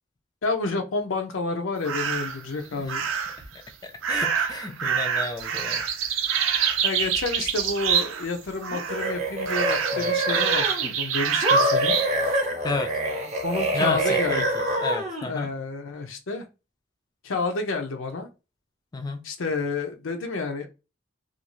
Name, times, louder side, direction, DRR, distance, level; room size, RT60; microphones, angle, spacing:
voice 1, 0.4-3.1 6.8-12.0 13.4-14.5 15.3-16.4 17.2-18.3 19.2-20.7, left 3 dB, 75° left, 0.6 m, -29 dB
sound 1, 1.8-2.4 2.9-3.5 4.0-8.4 8.6-9.1 9.5-12.1, right 7 dB, 75° right, 0.5 m, -26 dB
voice 2, 3.5-5.8 9.9-10.1 12.6-12.9 13.7-15.5 18.9-19.3, left 3 dB, 20° left, 0.3 m, -32 dB
sound 2, 8.7-10.9 11.4-15.3, right 1 dB, 35° right, 0.7 m, -25 dB
2.5 x 2.3 x 3.0 m
head